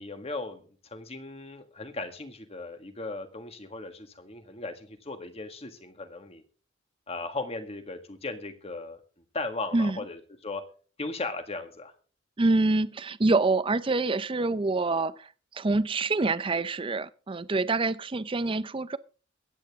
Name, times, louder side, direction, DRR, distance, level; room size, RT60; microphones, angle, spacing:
voice 1, 0.0-6.4 7.1-9.0 9.3-10.6 11.0-11.9, left 3 dB, 30° left, 1.7 m, -37 dB
voice 2, 12.4-15.3 15.5-19.0, right 3 dB, 25° right, 0.5 m, -26 dB
22.5 x 9.0 x 3.6 m
head